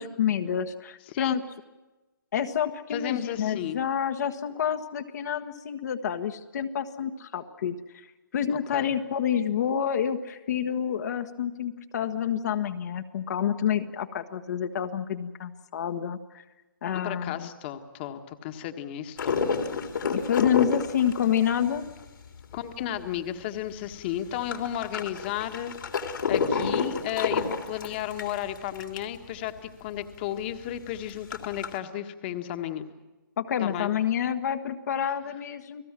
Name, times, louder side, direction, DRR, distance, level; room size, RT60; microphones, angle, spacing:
voice 1, 0.0-1.4 2.3-8.1 8.3-16.2 16.8-17.5 20.1-21.9 33.4-35.8, left 9 dB, 50° left, 6 dB, 1.4 m, -28 dB
voice 2, 2.9-3.8 8.7-8.9 16.9-19.4 22.5-29.5 29.8-32.9 33.6-33.9, left 11 dB, 30° left, 8 dB, 1.5 m, -33 dB
sound 1, 19.2-23.2 23.6-23.7 23.8-29.2 29.6-29.7 29.9-30.0 30.5-31.8, left 5 dB, 70° left, 3.4 m, -29 dB
30.0 x 18.5 x 7.5 m, 1.1 s
hypercardioid pair, 160°, 11 cm